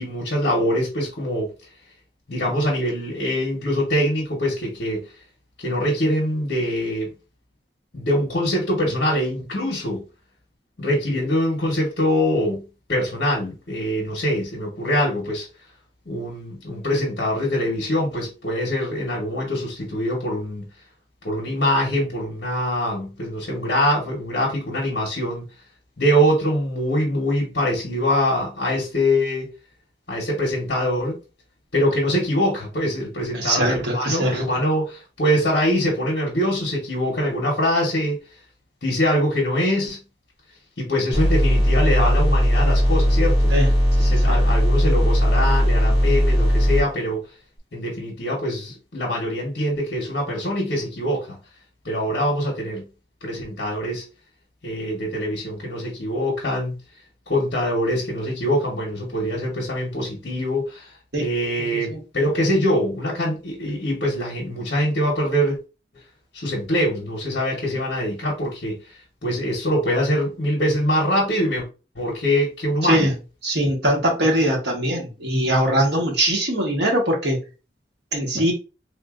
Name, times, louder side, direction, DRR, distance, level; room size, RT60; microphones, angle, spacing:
voice 1, 0.0-1.5 2.3-5.0 5.6-7.1 7.9-10.1 10.8-15.5 16.1-20.7 21.2-25.4 26.0-29.5 30.1-31.2 31.7-38.2 38.8-40.0 40.8-43.5 44.0-47.2 47.7-51.4 51.8-52.9 53.2-54.0 54.6-56.8 57.3-60.9 61.2-65.6 66.3-68.8 69.2-71.7 71.9-73.1, equal, 65° left, 1.0 m, -23 dB
voice 2, 33.3-34.5 43.5-44.4 61.1-61.3 61.6-62.0 72.8-73.1 73.4-77.4 78.1-78.5, right 1 dB, 70° right, 1.2 m, -22 dB
sound 1, 41.1-46.8, equal, 30° right, 1.1 m, -18 dB
3.4 x 2.6 x 2.4 m
head